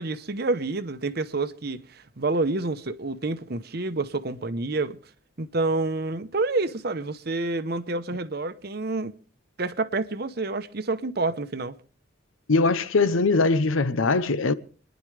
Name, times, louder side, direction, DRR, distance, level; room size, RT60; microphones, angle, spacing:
voice 1, 0.0-5.0 5.4-9.1 9.6-11.8, right 3 dB, 50° right, 0.8 m, -28 dB
voice 2, 12.5-14.5, left 3 dB, 90° left, 0.8 m, -21 dB
29.0 x 10.5 x 3.3 m
head